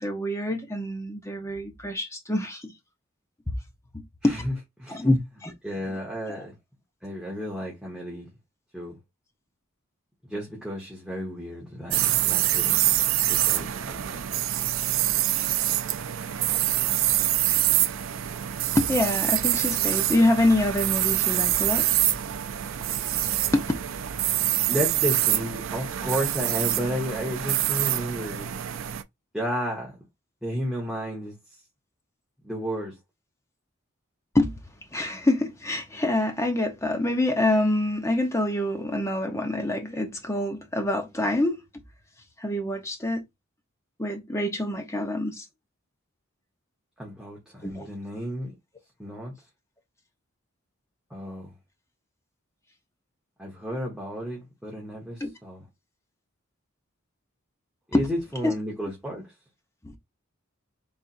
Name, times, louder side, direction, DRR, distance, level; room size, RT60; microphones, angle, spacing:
voice 1, 0.0-2.7 4.2-4.4 4.9-5.2 5.4-5.5 5.9-6.0 6.3-6.4 18.7-21.9 23.5-23.6 34.3-34.5 34.9-41.6 42.4-43.2 44.0-45.4 47.6-47.9 55.2-55.3 57.9-58.0 58.4-58.5 59.8-60.0, left 1 dB, 15° left, 0.9 m, -25 dB
voice 2, 4.2-5.0 5.6-6.5 7.0-8.3 8.7-9.0 10.3-12.8 13.3-14.2 24.7-28.5 29.3-30.0 30.4-31.4 32.4-33.0 47.0-48.5 49.0-49.3 51.1-51.5 53.4-55.7 57.9-59.3, equal, 5° right, 1.3 m, -32 dB
sound 1, 11.9-29.0, right 13 dB, 70° right, 0.4 m, -25 dB
4.2 x 3.5 x 2.6 m
head